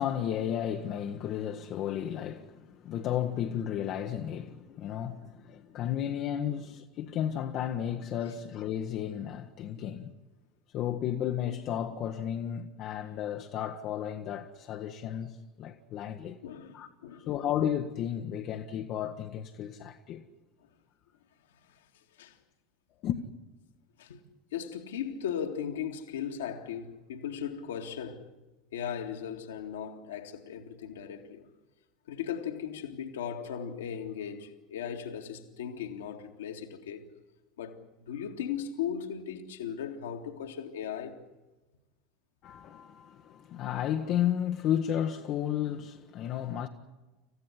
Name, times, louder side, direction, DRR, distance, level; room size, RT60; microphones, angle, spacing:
voice 1, 0.0-10.1 10.7-16.4 16.7-20.2 23.0-23.2 42.4-46.7, left 10 dB, 45° left, 1.2 m, -33 dB
voice 2, 16.4-16.8 17.0-17.3 21.7-21.8 22.2-22.4 24.0-24.2 24.5-28.3 28.7-31.5 32.1-37.0 37.6-41.2, left 8 dB, 70° left, 2.1 m, -37 dB
27.0 x 15.5 x 9.9 m
figure-of-eight pair, 75°, 0 cm